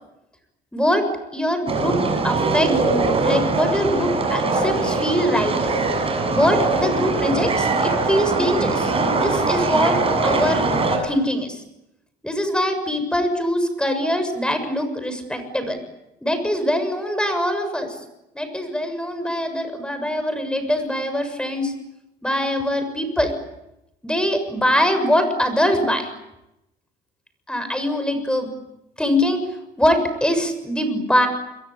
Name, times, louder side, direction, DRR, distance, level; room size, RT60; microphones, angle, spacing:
voice 1, 0.7-1.1 1.3-2.8 3.2-5.6 6.3-10.6 11.0-11.6 12.2-15.8 16.2-18.0 18.3-21.7 22.2-23.3 24.0-26.1 27.5-28.5 29.0-29.4 29.8-31.3, equal, 5° left, 9 dB, 7.1 m, -22 dB
sound 1, 1.7-11.0, right 3 dB, 35° right, 7.8 m, -21 dB
29.5 x 23.0 x 8.7 m, 0.88 s
cardioid pair, 110°, 17 cm